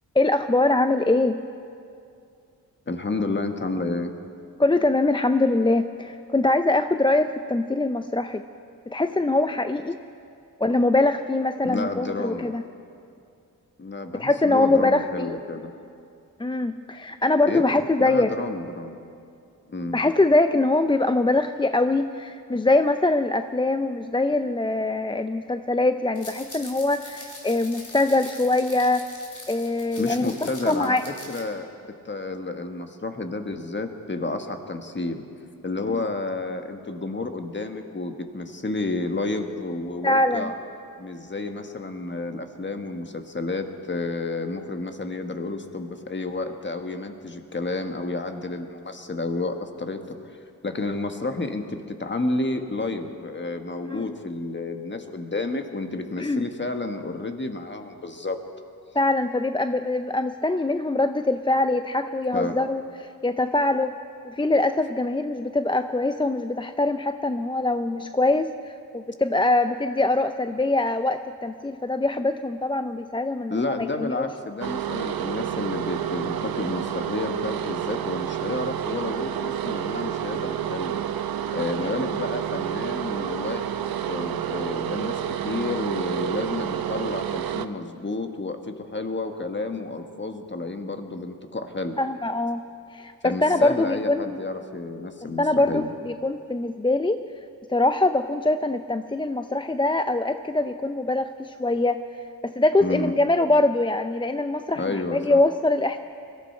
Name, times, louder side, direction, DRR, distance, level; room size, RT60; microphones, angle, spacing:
voice 1, 0.1-1.4 4.6-8.4 8.9-10.0 10.6-12.6 14.2-15.4 16.4-18.3 19.9-29.0 29.5-31.0 35.9-36.0 40.0-40.5 53.8-54.0 56.2-56.4 58.9-64.0 64.2-74.3 81.8-81.9 92.0-92.6 92.9-94.4 95.4-97.2 97.7-106.0, left 2 dB, 15° left, 9 dB, 0.4 m, -23 dB
voice 2, 2.9-4.1 11.6-12.5 13.8-15.7 17.5-17.6 18.0-19.0 19.7-20.0 30.0-31.0 31.3-31.7 32.0-35.2 35.6-40.5 41.0-50.2 50.6-58.4 62.3-62.5 73.5-81.0 81.5-83.8 84.1-92.0 93.2-95.9 102.8-103.1 104.8-105.4, left 3 dB, 30° left, 6 dB, 1.4 m, -30 dB
sound 1, 26.1-31.4, left 2 dB, 55° left, 3.5 m, -42 dB
sound 2, 74.6-87.7, right 10 dB, 75° right, 0.7 m, -29 dB
22.0 x 14.0 x 4.4 m, 2.5 s
cardioid pair, 65°, 36 cm